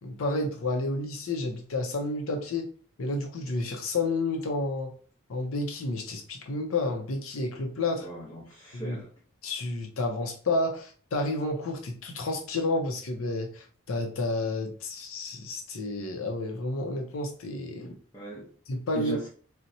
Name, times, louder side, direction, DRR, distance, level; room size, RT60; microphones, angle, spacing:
voice 1, 0.0-2.7 3.0-4.9 5.3-8.1 8.7-9.0 9.4-18.0 18.7-19.2, left 2 dB, 75° left, 0.6 m, -30 dB
voice 2, 8.0-9.1 18.1-18.5 18.9-19.3, right 1 dB, 20° left, 0.7 m, -39 dB
4.1 x 2.1 x 2.6 m
head